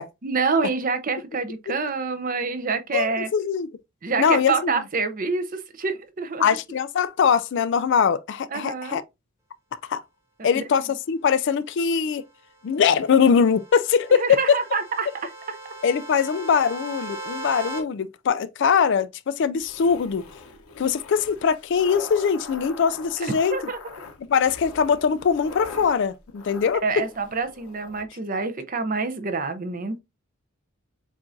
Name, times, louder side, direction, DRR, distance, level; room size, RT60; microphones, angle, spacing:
voice 1, 0.2-3.3 4.0-6.6 8.5-9.0 10.4-10.6 14.2-15.6 23.2-23.8 26.8-30.0, right 4 dB, 40° right, 0.6 m, -27 dB
voice 2, 2.9-3.7 4.2-4.7 6.4-9.0 9.9-10.0 10.4-12.2 12.6-14.6 15.8-20.2 20.8-23.6 24.3-27.0, left 6 dB, 55° left, 0.3 m, -22 dB
sound 1, 12.9-17.8, right 2 dB, 10° right, 0.9 m, -38 dB
sound 2, 19.6-28.0, left 4 dB, 75° left, 0.8 m, -42 dB
7.3 x 2.5 x 2.5 m
head